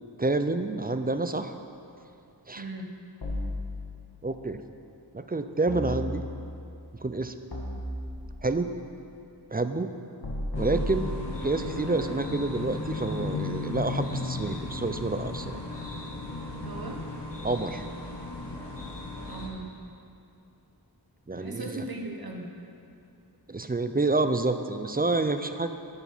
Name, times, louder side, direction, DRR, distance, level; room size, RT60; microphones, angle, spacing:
voice 1, 0.2-1.5 2.5-2.7 4.2-4.6 5.1-6.2 6.9-7.3 8.4-8.7 9.5-9.9 10.6-11.1 11.4-15.6 17.4-17.8 21.3-21.9 23.5-25.7, right 3 dB, 25° right, 9 dB, 0.5 m, -28 dB
voice 2, 2.5-2.9 16.6-17.0 19.3-19.7 21.3-22.5, right 2 dB, 60° right, 1 dB, 1.3 m, -38 dB
sound 1, 3.2-4.3 5.7-6.6 7.5-8.6 10.2-11.6, left 1 dB, 65° left, 1.7 m, -34 dB
sound 2, 10.5-19.5, left 2 dB, 90° left, 1.2 m, -35 dB
9.9 x 7.2 x 5.5 m, 2.5 s
wide cardioid pair, 45°, 41 cm